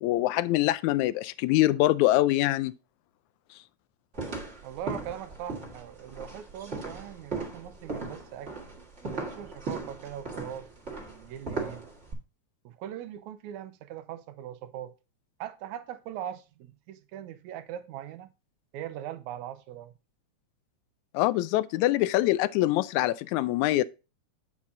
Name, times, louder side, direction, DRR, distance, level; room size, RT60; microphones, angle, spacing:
voice 1, 0.0-2.7 21.1-23.8, left 16 dB, 85° left, 1.9 m, -24 dB
sound 1, 4.1-12.1, right 3 dB, 25° right, 1.9 m, -37 dB
voice 2, 4.6-8.5 9.1-10.7 11.0-11.9 12.7-15.0 15.4-18.3 18.7-19.9, right 11 dB, 85° right, 2.1 m, -40 dB
8.6 x 7.4 x 2.6 m
omnidirectional pair, 3.3 m